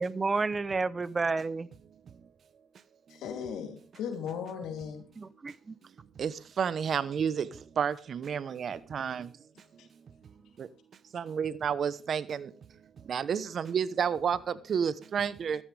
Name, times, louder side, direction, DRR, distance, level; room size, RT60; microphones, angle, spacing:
voice 1, 0.0-1.7 5.2-5.8, right 4 dB, 30° right, 0.8 m, -30 dB
voice 2, 3.1-5.0 9.8-9.9, left 7 dB, 85° left, 3.1 m, -37 dB
voice 3, 6.2-9.3 10.2-10.7 11.1-12.5 13.0-15.6, right 7 dB, 55° right, 1.0 m, -31 dB
14.0 x 13.5 x 3.4 m
cardioid pair, 90°, 0 cm